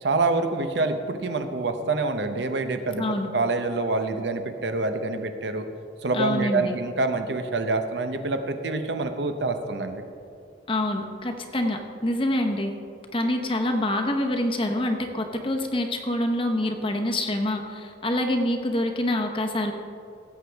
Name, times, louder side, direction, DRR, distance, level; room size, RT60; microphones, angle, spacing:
voice 1, 0.0-3.0 3.3-5.7 6.0-10.0, right 3 dB, 75° right, 7 dB, 0.8 m, -26 dB
voice 2, 3.0-3.3 6.1-6.8 10.7-12.7 13.1-19.7, left 1 dB, 30° left, 3 dB, 0.9 m, -26 dB
16.5 x 7.9 x 3.4 m, 2.5 s
head